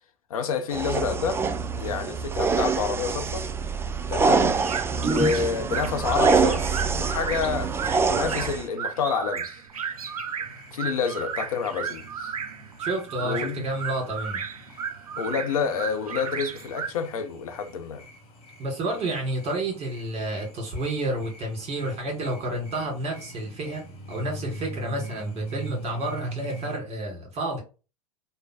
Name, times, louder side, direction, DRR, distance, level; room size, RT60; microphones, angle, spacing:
voice 1, 0.3-1.4 1.8-3.5 4.1-4.6 5.0-9.6 10.7-12.4 13.2-13.7 15.2-18.0, left 6 dB, 75° left, 0.7 m, -28 dB
sound 1, 0.7-8.7, right 5 dB, 15° right, 0.3 m, -25 dB
sound 2, 4.5-16.9, right 7 dB, 85° right, 0.5 m, -34 dB
sound 3, 9.7-26.8, right 2 dB, 30° left, 1.2 m, -42 dB
voice 2, 12.8-14.4 18.6-27.6, right 1 dB, 35° right, 1.7 m, -30 dB
3.2 x 2.2 x 4.1 m
hypercardioid pair, 90°, 18 cm